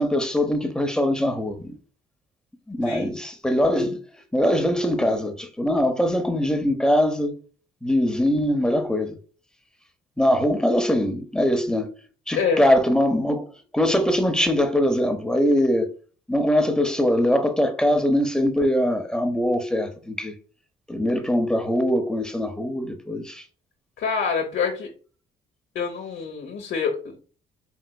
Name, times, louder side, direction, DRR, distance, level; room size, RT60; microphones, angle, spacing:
voice 1, 0.0-1.7 2.7-4.0 4.3-7.4 7.8-9.2 10.2-11.9 12.3-15.9 16.3-20.3 20.9-23.4, equal, 5° left, 0.7 m, -22 dB
voice 2, 24.0-24.9 25.7-27.2, left 6 dB, 70° left, 0.8 m, -26 dB
4.3 x 3.9 x 2.2 m
cardioid pair, 90°, 20 cm